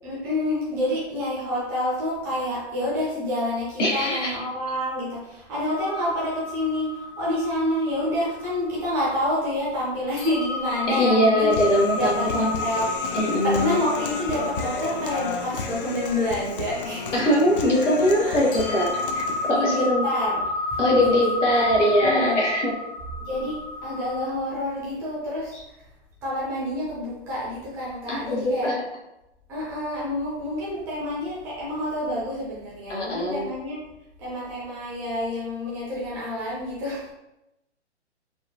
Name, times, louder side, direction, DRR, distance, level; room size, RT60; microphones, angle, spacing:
voice 1, 0.0-11.5 11.9-12.9 13.4-17.2 18.2-18.4 19.4-20.4 20.7-21.6 22.0-22.4 23.3-25.5 26.2-28.7 29.5-33.8 34.2-37.1, left 1 dB, 5° right, -7 dB, 0.5 m, -28 dB
voice 2, 3.8-4.4 10.9-12.5 13.1-13.7 17.1-20.1 20.8-22.7 25.5-25.6 28.1-28.8 32.9-33.5, left 1 dB, 85° left, -2 dB, 0.9 m, -22 dB
sound 1, 5.7-9.7 10.2-18.3 18.5-24.3, left 3 dB, 35° left, 0.9 m, -32 dB
Human voice, 11.5-19.5, left 4 dB, 50° left, 0.5 m, -33 dB
3.6 x 2.2 x 2.6 m, 0.91 s
hypercardioid pair, 135°, 35 cm